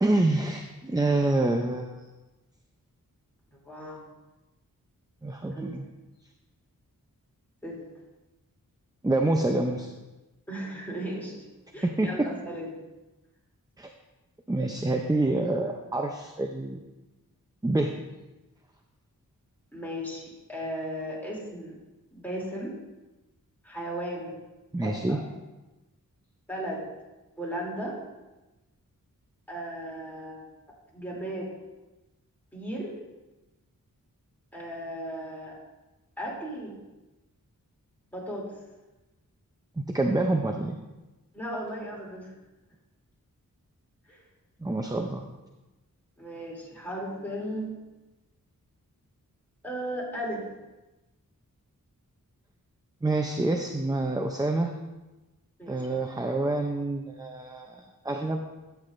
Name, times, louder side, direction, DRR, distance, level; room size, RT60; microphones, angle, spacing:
voice 1, 0.0-2.1 5.2-5.8 9.0-9.9 11.8-12.3 13.8-13.9 14.5-16.8 17.6-18.0 24.7-25.2 39.8-40.8 44.6-45.2 53.0-54.7 55.7-58.5, right 2 dB, 10° right, 4 dB, 0.6 m, -27 dB
voice 2, 3.6-4.0 5.5-5.7 7.6-7.8 10.5-11.5 11.7-12.8 19.7-21.8 22.1-22.7 23.6-24.4 24.8-25.2 26.5-26.8 27.4-28.0 29.5-30.4 30.9-31.5 32.5-32.9 34.5-35.5 36.2-36.8 38.1-38.4 41.3-42.3 44.1-44.2 46.2-47.8 49.6-50.4 55.6-55.8, equal, 5° left, -4 dB, 2.9 m, -36 dB
12.5 x 8.2 x 2.6 m, 1.1 s
wide cardioid pair, 85°, 34 cm